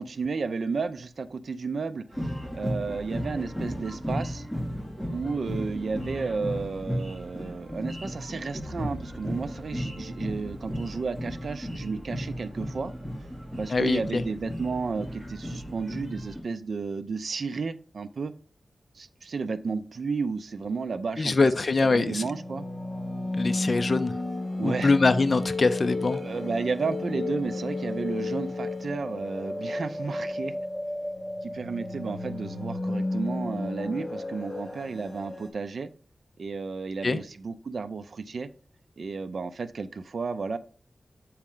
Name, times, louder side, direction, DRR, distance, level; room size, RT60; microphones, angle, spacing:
voice 1, 0.0-4.5 5.1-12.9 13.6-18.3 19.0-21.5 21.8-22.6 24.6-24.9 26.1-30.5 31.4-35.9 36.4-38.5 39.0-40.6, right 4 dB, 65° right, 12 dB, 0.5 m, -32 dB
sound 1, 2.1-16.4, equal, 5° right, 2.6 m, -35 dB
voice 2, 13.7-14.2 21.2-22.3 23.3-24.1 24.6-26.2 37.0-37.2, left 3 dB, 45° left, 10 dB, 0.5 m, -23 dB
sound 2, 21.3-35.5, left 2 dB, 10° left, 1.2 m, -33 dB
7.2 x 4.3 x 3.8 m, 0.43 s
wide cardioid pair, 100°, 0 cm